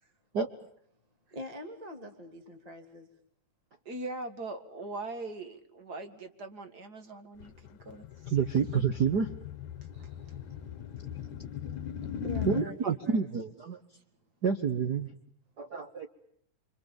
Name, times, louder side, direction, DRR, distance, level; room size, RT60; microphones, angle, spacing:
voice 1, 1.3-3.1 9.9-10.4 11.8-13.2, equal, 15° right, 5 dB, 2.0 m, -44 dB
voice 2, 3.9-8.1, right 2 dB, 35° right, 7 dB, 2.1 m, -41 dB
sound 1, 7.4-12.7, left 9 dB, 70° left, 2.6 m, -38 dB
voice 3, 8.3-9.4 12.4-13.8 14.4-15.1 15.6-16.1, right 6 dB, 55° right, 7 dB, 1.1 m, -29 dB
28.0 x 26.0 x 7.2 m, 0.70 s
omnidirectional pair, 3.7 m